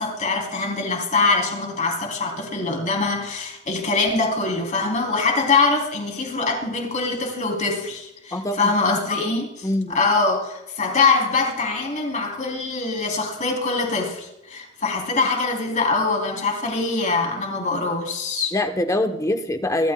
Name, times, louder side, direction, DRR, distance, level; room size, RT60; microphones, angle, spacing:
voice 1, 0.0-18.5, left 3 dB, 40° left, 2 dB, 3.1 m, -23 dB
voice 2, 8.3-8.7 9.6-10.0 18.5-19.9, left 1 dB, 15° left, 7 dB, 0.9 m, -23 dB
29.0 x 13.5 x 2.3 m, 0.90 s
head